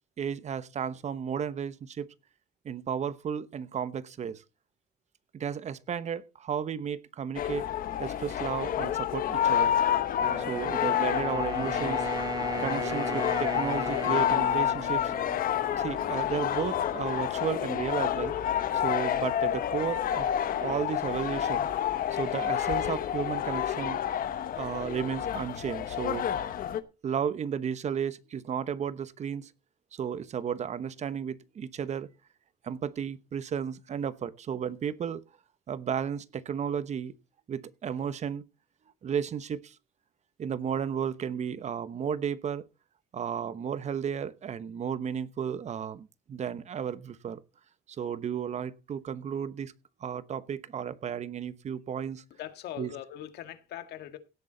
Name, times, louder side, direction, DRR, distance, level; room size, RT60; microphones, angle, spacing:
voice 1, 0.2-2.1 2.6-4.4 5.3-7.7 8.0-9.8 10.4-12.1 12.6-15.1 15.8-18.4 18.7-20.3 20.6-21.7 22.1-24.0 24.6-26.3 27.0-29.5 29.9-32.1 32.6-35.2 35.7-37.1 37.5-38.4 39.0-39.8 40.4-42.7 43.1-47.4 47.9-49.7 50.0-52.2 52.8-52.9, right 8 dB, 45° right, 1.0 m, -33 dB
sound 1, 7.3-26.8, left 10 dB, 60° left, 1.1 m, -29 dB
Wind instrument woodwind instrument, 10.2-16.2, right 1 dB, 25° right, 2.7 m, -36 dB
voice 2, 52.4-54.2, left 12 dB, 75° left, 1.8 m, -41 dB
17.0 x 8.3 x 4.0 m
cardioid pair, 110°, 17 cm